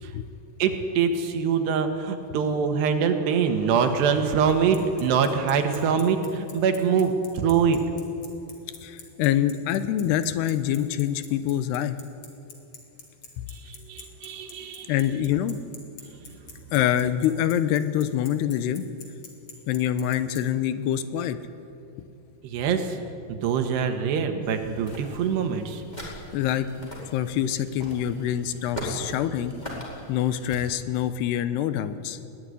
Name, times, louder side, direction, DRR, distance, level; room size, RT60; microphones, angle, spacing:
voice 1, 0.6-7.8 13.5-14.9 22.4-23.0 23.3-25.8, right 6 dB, 85° right, 6 dB, 3.7 m, -24 dB
Bicycle, 4.5-20.4, left 5 dB, 40° left, 3.5 m, -44 dB
voice 2, 8.8-12.0 13.4-13.5 14.9-15.6 16.7-18.9 19.7-21.4 26.3-26.7 27.1-29.5 30.1-32.2, left 11 dB, 85° left, 12 dB, 2.9 m, -25 dB
sound 1, 24.4-30.6, equal, 10° left, 4.2 m, -40 dB
21.5 x 17.0 x 9.7 m, 2.7 s
omnidirectional pair, 4.8 m